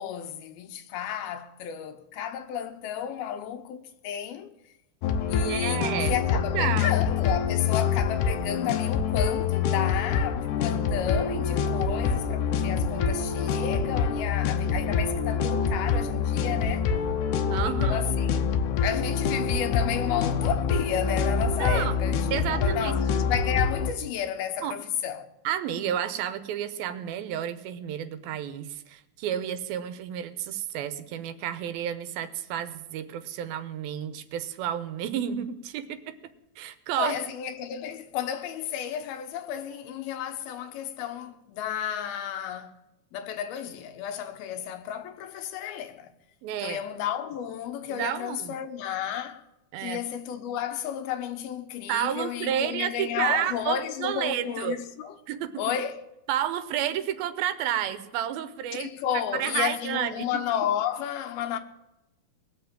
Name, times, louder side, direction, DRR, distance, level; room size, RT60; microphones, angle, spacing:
voice 1, 0.0-4.5 5.3-16.9 17.6-18.5 18.8-25.3 37.0-42.8 43.1-46.1 46.6-49.4 49.8-55.1 55.6-56.0 58.7-61.6, left 9 dB, 85° left, 3.1 m, -32 dB
sound 1, 5.0-23.9, left 6 dB, 70° left, 2.2 m, -26 dB
voice 2, 5.4-6.1 6.5-7.0 17.5-18.1 21.6-21.9 22.3-22.9 24.6-24.8 25.4-36.2 36.6-37.3 46.4-46.8 47.9-48.6 49.7-50.0 51.9-54.8 55.3-55.6 56.3-58.9 59.1-60.3, right 10 dB, 80° right, 2.8 m, -31 dB
20.5 x 7.0 x 8.8 m
omnidirectional pair, 4.3 m